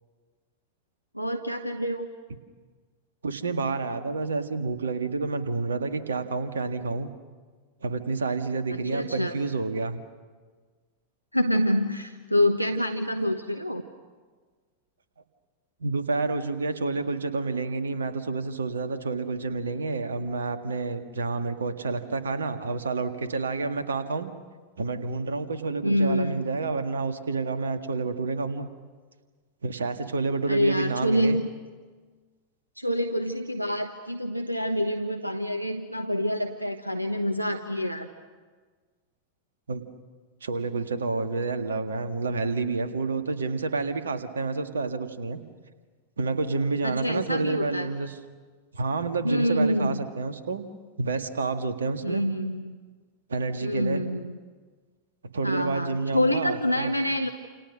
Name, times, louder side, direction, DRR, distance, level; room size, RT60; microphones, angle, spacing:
voice 1, 1.1-2.1 8.7-9.4 11.3-13.8 25.8-26.4 30.5-31.4 32.8-38.1 46.8-47.9 49.2-50.0 52.0-52.8 53.6-54.4 55.4-57.3, equal, 90° right, 7 dB, 1.1 m, -26 dB
voice 2, 3.2-7.1 7.8-10.0 15.8-24.3 24.8-28.7 29.6-31.4 39.7-39.8 40.4-45.4 46.2-48.1 48.7-50.6 51.0-52.2 53.3-54.0 55.3-56.9, right 4 dB, 70° right, 8 dB, 1.9 m, -29 dB
29.0 x 29.0 x 6.5 m, 1.5 s
figure-of-eight pair, 90°, 0 cm